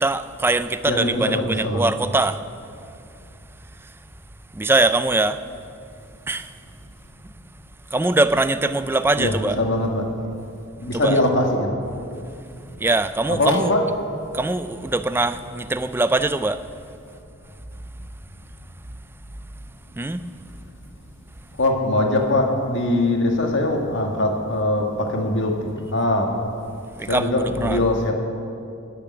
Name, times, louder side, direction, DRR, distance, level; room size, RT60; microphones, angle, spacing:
voice 1, 0.0-2.4 4.6-5.4 6.3-6.5 7.9-9.6 10.9-11.2 12.8-13.7 14.3-16.6 20.0-20.2 27.0-27.3 27.6-27.8, right 2 dB, 10° right, 11 dB, 0.4 m, -22 dB
voice 2, 0.8-1.9 9.2-10.1 10.8-11.8 13.3-13.8 21.6-26.3 27.1-28.1, left 1 dB, 55° left, 2 dB, 1.9 m, -22 dB
16.5 x 6.8 x 9.6 m, 2.5 s
head